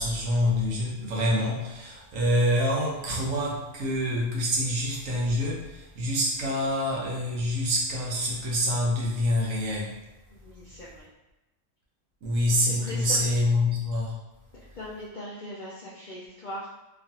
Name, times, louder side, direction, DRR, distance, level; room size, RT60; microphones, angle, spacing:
voice 1, 0.0-9.9 12.2-14.1, left 1 dB, 75° right, -3 dB, 1.1 m, -26 dB
voice 2, 10.3-11.1 12.7-13.3 14.8-16.7, left 1 dB, 75° left, -7 dB, 0.4 m, -40 dB
2.9 x 2.5 x 2.7 m, 1.0 s
omnidirectional pair, 1.4 m